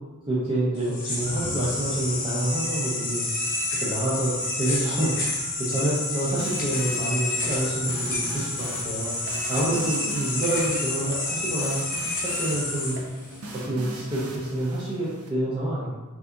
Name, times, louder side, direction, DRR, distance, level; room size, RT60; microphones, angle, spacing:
voice 1, 0.3-11.8 12.2-13.0 13.5-16.0, right 1 dB, 25° right, -8 dB, 0.6 m, -28 dB
sound 1, 0.8-13.6, left 2 dB, 40° left, 0.8 m, -29 dB
awesome song, 6.3-15.3, right 2 dB, 90° right, 0.6 m, -41 dB
4.5 x 2.9 x 2.5 m, 1.2 s
head